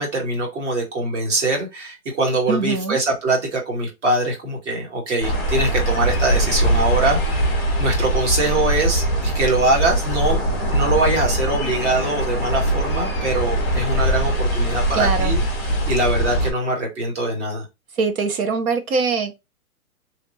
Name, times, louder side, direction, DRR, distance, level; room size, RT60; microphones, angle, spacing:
voice 1, 0.0-7.5 7.8-10.4 10.7-15.4 15.9-17.6, right 2 dB, 50° right, 1.7 m, -23 dB
voice 2, 2.5-3.0 14.9-15.3 17.9-19.4, right 4 dB, 70° right, 0.7 m, -22 dB
sound 1, 5.2-16.5, right 1 dB, 5° right, 0.5 m, -22 dB
3.1 x 2.8 x 2.6 m
hypercardioid pair, 160°, 45 cm